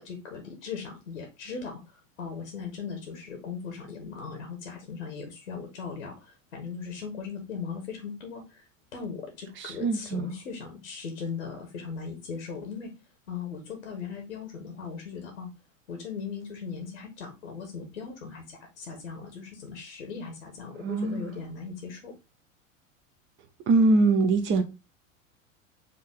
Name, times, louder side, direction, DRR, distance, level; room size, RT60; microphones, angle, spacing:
voice 1, 0.0-8.6 8.9-12.9 13.3-15.5 15.9-22.1, left 5 dB, 70° left, 1.3 m, -38 dB
voice 2, 9.6-10.3 20.8-21.3 23.7-24.6, right 3 dB, 30° right, 0.8 m, -23 dB
5.2 x 2.7 x 3.6 m
figure-of-eight pair, 80°, 41 cm